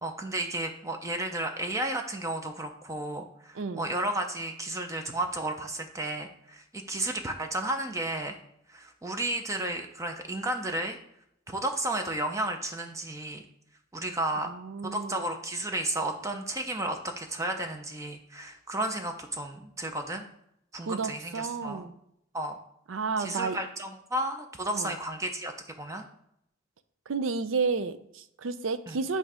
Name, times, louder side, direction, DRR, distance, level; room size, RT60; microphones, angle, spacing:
voice 1, 0.0-8.4 8.7-11.0 11.5-13.4 13.9-14.5 14.8-20.2 20.7-21.8 22.3-22.6 23.2-25.5 25.8-26.1 28.9-29.0, right 1 dB, 15° right, 5 dB, 0.5 m, -33 dB
voice 2, 14.4-15.3 20.8-21.9 22.9-23.6 24.7-24.9 27.1-29.2, right 4 dB, 80° right, 12 dB, 0.5 m, -31 dB
7.9 x 2.7 x 4.9 m, 0.76 s
head